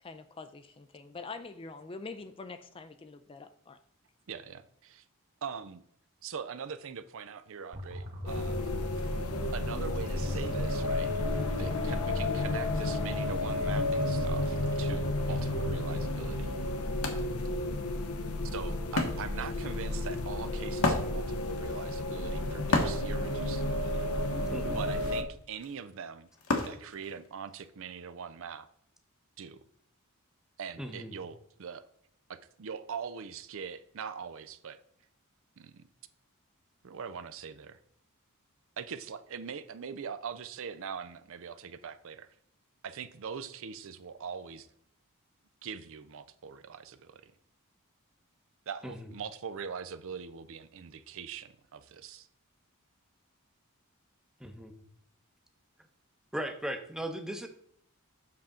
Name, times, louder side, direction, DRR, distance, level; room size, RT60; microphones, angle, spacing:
voice 1, 0.0-3.8, left 3 dB, 25° left, 9 dB, 0.4 m, -45 dB
voice 2, 4.3-5.0 5.4-5.8 6.2-8.6 9.5-11.1 11.5-16.5 18.4-23.9 24.7-26.3 26.6-28.7 29.4-29.6 30.6-31.8 32.3-34.8 35.6-35.8 36.8-37.8 38.8-42.3 42.8-44.7 45.6-47.3 48.7-52.3, right 6 dB, 65° right, 12 dB, 0.5 m, -42 dB
sound 1, 7.7-15.7, left 1 dB, 45° right, 1.7 m, -40 dB
sound 2, 8.3-25.2, left 2 dB, 90° left, 0.9 m, -32 dB
Wood, 16.0-16.1 16.4-27.7, left 2 dB, 70° left, 1.3 m, -35 dB
voice 3, 24.5-24.8 30.8-31.1 48.8-49.1 54.4-54.7 56.3-57.5, equal, 5° right, 5 dB, 0.8 m, -37 dB
7.6 x 5.8 x 3.7 m, 0.68 s
head